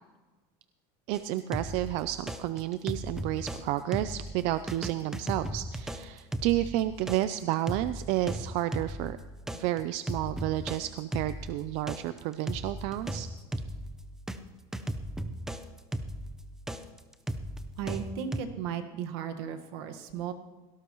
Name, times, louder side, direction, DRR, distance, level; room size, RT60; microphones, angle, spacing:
sound 1, 1.1-3.6 3.9-14.4 14.7-18.4, right 1 dB, 5° right, 0.6 m, -36 dB
voice 1, 1.1-9.2 9.5-13.3, right 14 dB, 55° right, 12 dB, 0.4 m, -31 dB
voice 2, 17.8-20.3, right 8 dB, 75° right, 7 dB, 1.5 m, -35 dB
18.0 x 16.5 x 3.0 m, 1.3 s
cardioid pair, 170°, 13 cm